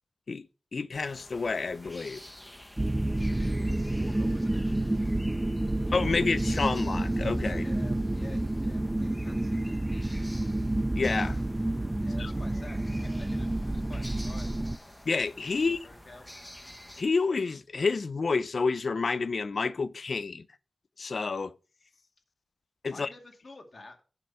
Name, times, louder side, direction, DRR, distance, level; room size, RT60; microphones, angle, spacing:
voice 1, 0.7-2.2 5.9-7.6 11.0-11.4 12.2-12.3 15.1-15.8 17.0-20.5 21.0-21.6 22.8-23.1, left 4 dB, 70° left, 0.5 m, -29 dB
sound 1, 0.9-17.0, left 1 dB, 15° left, 1.1 m, -49 dB
sound 2, 2.8-14.8, right 1 dB, 20° right, 0.5 m, -29 dB
voice 2, 3.1-5.1 5.7-6.6 7.5-10.1 11.9-14.6 15.5-16.3 22.9-24.0, left 3 dB, 55° left, 2.3 m, -51 dB
7.8 x 6.8 x 5.5 m
wide cardioid pair, 85°, 0 cm